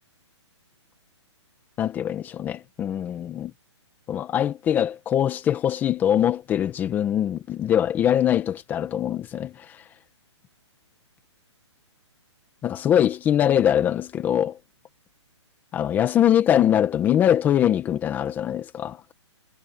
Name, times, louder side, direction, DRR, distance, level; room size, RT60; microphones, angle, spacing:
voice 1, 1.8-3.5 4.1-9.6 12.6-14.6 15.7-19.1, left 10 dB, 10° left, 1.3 m, -22 dB
hypercardioid pair, 165°, 15 cm